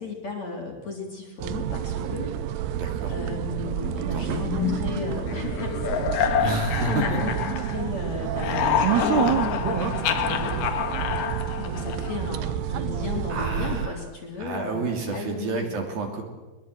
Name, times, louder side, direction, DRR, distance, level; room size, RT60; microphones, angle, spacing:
voice 1, 0.0-2.7 3.1-6.5 6.9-10.6 11.6-15.7, left 4 dB, 40° left, 1 dB, 3.8 m, -34 dB
sound 1, 1.4-13.9, right 11 dB, 75° right, 2.6 m, -29 dB
voice 2, 2.7-3.1 4.1-4.4 6.4-7.2 13.3-14.0 14.4-16.2, right 3 dB, 55° right, 3 dB, 4.3 m, -30 dB
sound 2, 4.5-8.0 8.3-12.3, left 9 dB, 60° left, 2.5 m, -27 dB
23.0 x 22.5 x 7.8 m, 1.1 s
omnidirectional pair, 5.4 m